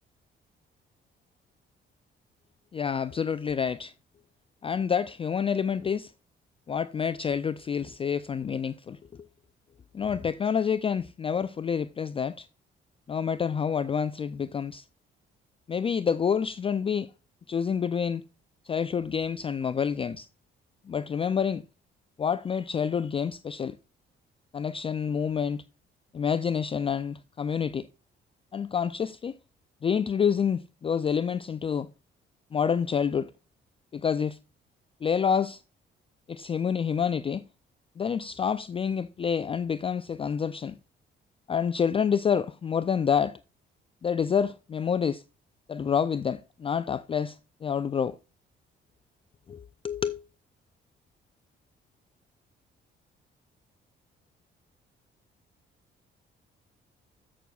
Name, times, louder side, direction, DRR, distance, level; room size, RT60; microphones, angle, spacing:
voice 1, 2.7-3.9 4.6-6.1 6.7-9.3 9.9-12.5 13.1-14.8 15.7-17.1 17.5-18.2 18.6-20.3 20.9-21.6 22.2-23.8 24.5-25.6 26.1-27.9 28.5-29.4 29.8-31.9 32.5-33.3 33.9-34.4 35.0-35.6 36.3-37.4 38.0-40.8 41.5-43.4 44.0-45.2 45.7-48.2 49.5-50.2, left 7 dB, 30° left, 0.3 m, -28 dB
14.0 x 6.2 x 2.3 m
cardioid pair, 90°, 20 cm